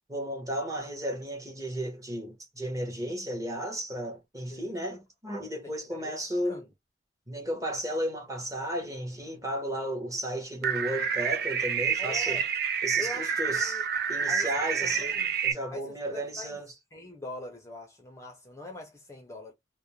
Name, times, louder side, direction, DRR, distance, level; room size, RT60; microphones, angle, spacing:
voice 1, 0.1-6.6 7.3-12.4 12.8-13.8 14.1-15.1 15.4-16.7, right 1 dB, 20° right, 0.9 m, -34 dB
voice 2, 4.5-5.0 6.0-6.1 6.4-6.7 12.0-12.5 13.0-13.8 14.3-14.5 14.8-15.3 15.7-16.6 16.9-19.5, left 2 dB, 15° left, 0.6 m, -43 dB
sound 1, 10.6-15.5, right 7 dB, 55° right, 0.4 m, -28 dB
2.4 x 2.1 x 3.0 m
head